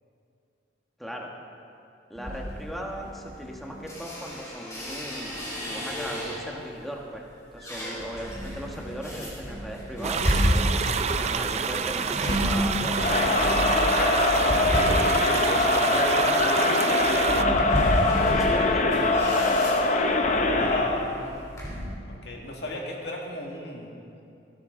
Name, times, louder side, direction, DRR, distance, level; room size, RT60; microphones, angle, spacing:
voice 1, 1.0-1.3 2.1-7.2 7.5-14.2 15.3-16.8 17.2-17.7 18.2-19.1, equal, ahead, -1 dB, 1.3 m, -38 dB
sound 1, 2.1-6.7 7.1-21.8, equal, 20° left, 3.2 m, -31 dB
sound 2, 10.0-17.4, right 6 dB, 35° right, 0.4 m, -28 dB
voice 2, 10.8-11.8 15.7-15.9 20.3-21.2 22.1-23.9, left 1 dB, 65° left, -1 dB, 2.0 m, -38 dB
Crowd, 12.9-21.1, left 2 dB, 40° left, 0.9 m, -23 dB
17.5 x 13.0 x 3.8 m, 2.6 s
head